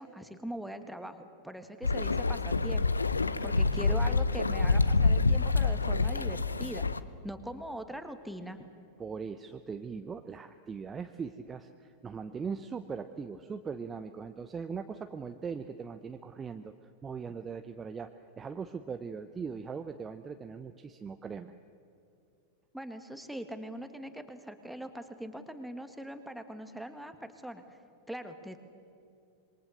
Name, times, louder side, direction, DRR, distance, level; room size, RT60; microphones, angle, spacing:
voice 1, 0.0-3.1 3.4-6.9 7.2-8.6 22.7-27.6 28.1-28.6, equal, ahead, 7 dB, 1.8 m, -41 dB
sound 1, 1.8-7.0, left 3 dB, 80° left, 0.7 m, -27 dB
voice 2, 9.0-16.7 17.0-18.1 18.4-21.5, right 5 dB, 20° right, 8 dB, 0.8 m, -40 dB
26.5 x 22.5 x 6.7 m, 2.6 s
figure-of-eight pair, 90°, 0 cm